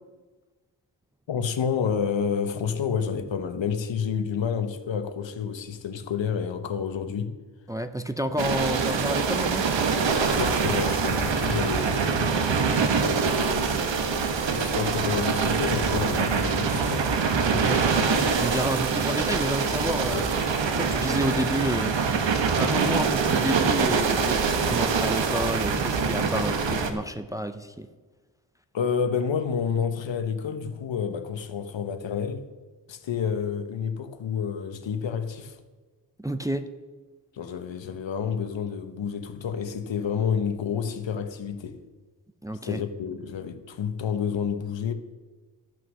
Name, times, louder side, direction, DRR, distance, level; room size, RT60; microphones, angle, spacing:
voice 1, 1.3-7.3 8.4-8.6 10.4-12.3 12.9-13.7 14.0-14.1 14.5-17.1 20.1-20.2 28.7-32.5 32.9-35.6 37.3-41.8 42.6-44.9, left 7 dB, 85° left, 1.0 m, -29 dB
voice 2, 7.7-9.7 17.5-17.8 18.4-20.3 20.7-21.9 22.6-27.9 36.2-36.6 42.4-42.8, equal, 10° right, 0.5 m, -30 dB
sound 1, 8.4-26.9, right 5 dB, 90° right, 1.1 m, -24 dB
13.5 x 6.2 x 6.2 m
wide cardioid pair, 140°, 44 cm